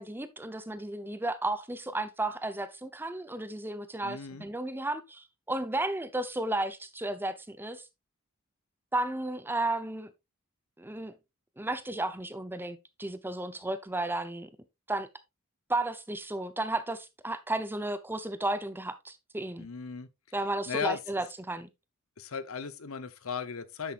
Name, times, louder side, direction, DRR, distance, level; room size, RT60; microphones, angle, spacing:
voice 1, 0.0-7.8 8.9-10.1 10.8-11.1 11.6-14.5 14.9-15.1 15.7-19.7 20.3-21.7, right 2 dB, 10° right, 0.8 m, -33 dB
voice 2, 4.0-4.5 19.6-20.1 20.7-21.0 22.2-23.9, left 6 dB, 75° left, 0.9 m, -36 dB
10.5 x 7.3 x 2.5 m
head